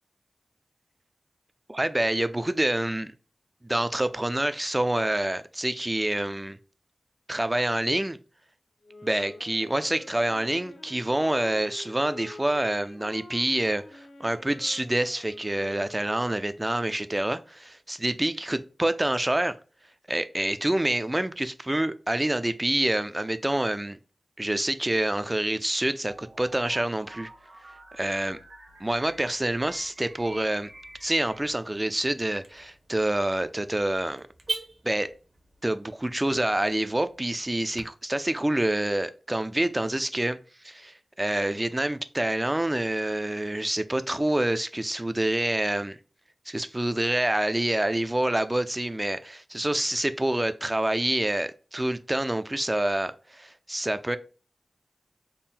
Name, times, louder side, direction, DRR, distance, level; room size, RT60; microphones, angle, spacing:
voice 1, 1.7-3.1 3.6-6.6 7.3-8.2 9.0-19.6 20.1-24.0 24.4-27.3 27.9-28.4 28.8-30.7 31.0-34.3 34.8-35.1 35.6-40.4 40.6-46.0 46.5-54.2, right 1 dB, 20° right, 0.3 m, -27 dB
sound 1, 8.8-16.7, left 2 dB, 80° left, 0.9 m, -47 dB
sound 2, 26.0-31.5, right 1 dB, 70° right, 1.1 m, -49 dB
Car / Alarm, 28.7-37.8, right 3 dB, 50° right, 0.8 m, -44 dB
3.6 x 2.1 x 4.1 m
wide cardioid pair, 75°, 0 cm